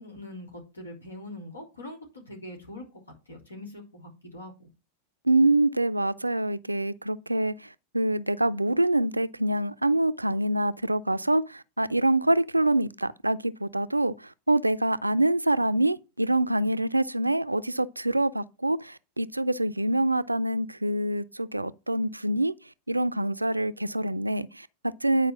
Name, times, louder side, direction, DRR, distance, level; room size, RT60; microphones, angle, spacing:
voice 1, 0.0-4.7, left 1 dB, 80° left, 3.7 m, -43 dB
voice 2, 5.2-22.5 22.9-25.3, right 1 dB, 85° right, 0.5 m, -25 dB
9.9 x 4.8 x 6.0 m
figure-of-eight pair, 90°, 0 cm